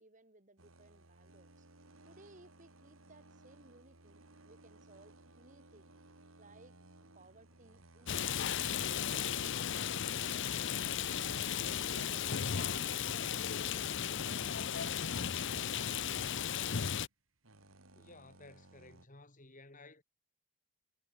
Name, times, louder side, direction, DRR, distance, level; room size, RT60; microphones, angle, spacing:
voice 1, 0.0-5.9 6.4-6.8 7.1-11.2 11.6-16.3, right 2 dB, 35° right, 3.0 m, -61 dB
sound 1, 0.6-19.1, right 2 dB, 70° right, 2.9 m, -61 dB
sound 2, 5.9-6.1 6.5-15.9, equal, 5° right, 7.3 m, -62 dB
Rain, 8.1-17.1, left 8 dB, 60° left, 0.7 m, -35 dB
voice 2, 17.9-20.0, left 2 dB, 40° left, 3.4 m, -56 dB
head